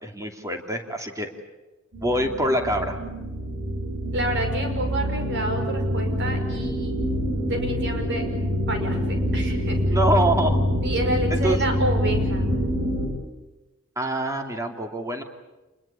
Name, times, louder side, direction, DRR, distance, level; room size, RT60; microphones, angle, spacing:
voice 1, 0.0-1.3 2.0-3.0 9.8-10.6 11.3-11.6 14.0-15.2, right 1 dB, 15° right, 4 dB, 2.9 m, -25 dB
sound 1, 1.9-13.1, equal, 80° right, 6.1 m, -25 dB
voice 2, 4.1-6.9 7.5-8.2 8.7-10.0 10.8-12.5, right 1 dB, 55° right, 5 dB, 5.8 m, -29 dB
28.0 x 21.5 x 8.6 m, 1.1 s
head